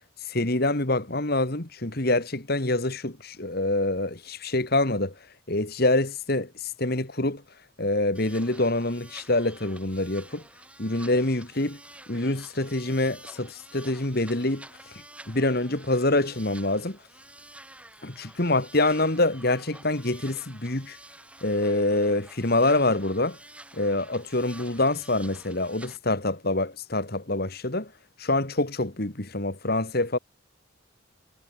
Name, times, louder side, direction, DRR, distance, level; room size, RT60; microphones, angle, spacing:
voice 1, 0.3-5.1 5.5-7.4 7.8-10.4 10.8-11.8 12.1-14.7 15.3-17.0 18.0-21.0 21.4-23.4 23.7-27.9 28.2-30.2, left 2 dB, 45° left, 2.2 m, -26 dB
sound 1, 8.1-26.0, right 1 dB, 5° right, 7.4 m, -49 dB
head